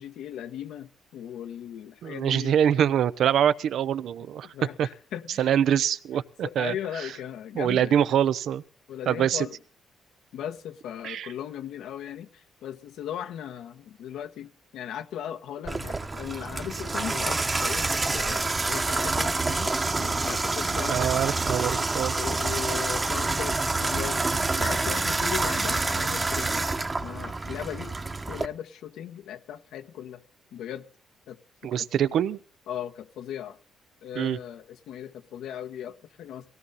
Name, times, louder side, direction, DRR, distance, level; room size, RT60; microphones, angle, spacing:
voice 1, 0.0-2.6 4.4-5.5 6.4-8.0 8.9-9.6 10.3-19.7 20.0-21.0 22.1-24.2 24.6-26.6 27.0-27.9 28.3-30.2 30.5-30.8 31.3-31.9 32.7-33.6 34.0-36.5, left 10 dB, 85° left, 1.3 m, -37 dB
voice 2, 2.0-4.5 4.8-4.9 5.4-6.7 7.6-8.6 9.1-9.5 11.0-11.3 20.9-22.2 31.6-32.4 34.2-34.4, right 9 dB, 70° right, 0.7 m, -24 dB
Water tap faucet / Bathtub (filling or washing), 15.7-28.5, right 3 dB, 25° right, 1.1 m, -27 dB
18.0 x 16.5 x 4.2 m
cardioid pair, 90°, 0 cm